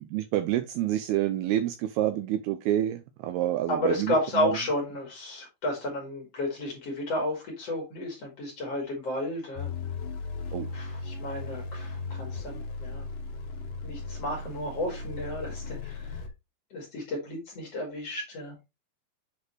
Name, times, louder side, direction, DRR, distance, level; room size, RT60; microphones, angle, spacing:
voice 1, 0.0-4.5 10.5-10.7, right 13 dB, 85° right, 2.3 m, -28 dB
voice 2, 3.7-9.7 10.7-13.1 13.8-16.2 16.7-18.5, left 1 dB, 45° left, 2.5 m, -32 dB
sound 1, 9.6-16.3, left 4 dB, 70° left, 2.2 m, -37 dB
7.8 x 4.1 x 3.1 m
omnidirectional pair, 4.9 m